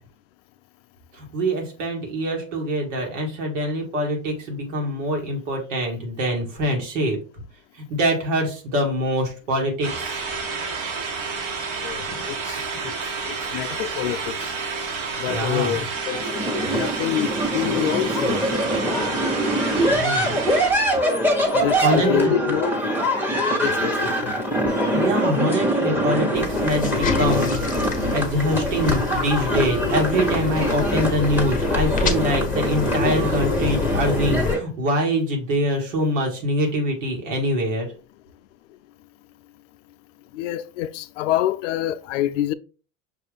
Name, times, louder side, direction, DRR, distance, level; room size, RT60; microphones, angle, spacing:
voice 1, 1.1-7.2 7.8-10.2 12.1-12.2 15.2-15.9 19.8-20.4 21.8-22.3 24.0-24.1 24.9-37.9, equal, 80° right, 1.9 m, -24 dB
sound 1, 9.8-20.7, right 4 dB, 50° right, 1.3 m, -30 dB
voice 2, 11.8-12.9 13.3-14.5 15.2-16.2 16.7-18.4 21.5-22.8 23.6-24.6 40.3-42.5, left 12 dB, 80° left, 0.5 m, -27 dB
sound 2, 16.1-34.6, equal, 5° right, 1.1 m, -23 dB
sound 3, 26.4-34.5, left 5 dB, 20° left, 0.8 m, -27 dB
5.9 x 2.5 x 3.4 m
hypercardioid pair, 105°, 37 cm